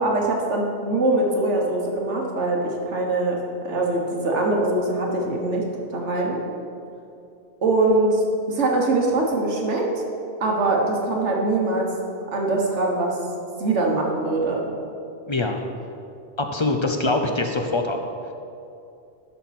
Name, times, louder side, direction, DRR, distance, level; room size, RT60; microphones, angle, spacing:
voice 1, 0.0-3.4 3.6-5.7 5.9-6.4 7.6-8.2 8.5-10.0 10.4-11.9 12.3-13.2 13.6-14.7, right 2 dB, 90° right, -1 dB, 1.6 m, -22 dB
voice 2, 15.3-15.6 16.4-18.0, left 2 dB, 40° left, 4 dB, 0.4 m, -23 dB
12.0 x 6.1 x 4.2 m, 2.7 s
omnidirectional pair, 1.2 m